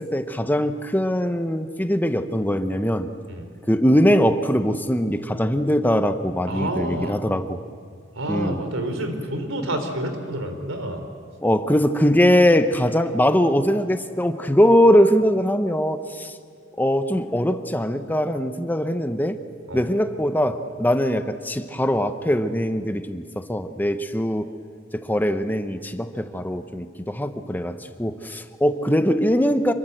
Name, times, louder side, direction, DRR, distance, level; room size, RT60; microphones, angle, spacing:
voice 1, 0.0-3.1 3.7-7.6 8.3-8.6 11.4-16.3 16.8-19.4 19.7-24.5 24.9-29.7, equal, 10° left, 9 dB, 0.9 m, -21 dB
voice 2, 6.5-7.2 8.2-11.0 19.7-19.9, right 1 dB, 90° right, 7 dB, 3.4 m, -28 dB
26.5 x 23.0 x 7.9 m, 2.2 s
head